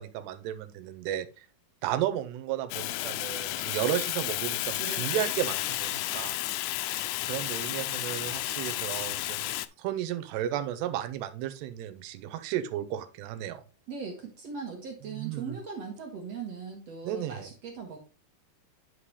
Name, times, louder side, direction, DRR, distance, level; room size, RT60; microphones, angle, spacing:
voice 1, 0.0-1.5 1.8-6.4 6.9-9.5 9.8-13.6 15.1-15.6 17.0-17.5, right 11 dB, 85° right, 11 dB, 2.9 m, -33 dB
Fire, 2.7-9.7, left 17 dB, 85° left, 2.5 m, -32 dB
voice 2, 4.8-5.3 13.9-18.0, right 5 dB, 60° right, 1 dB, 1.8 m, -39 dB
9.9 x 5.6 x 3.2 m, 0.33 s
omnidirectional pair, 4.8 m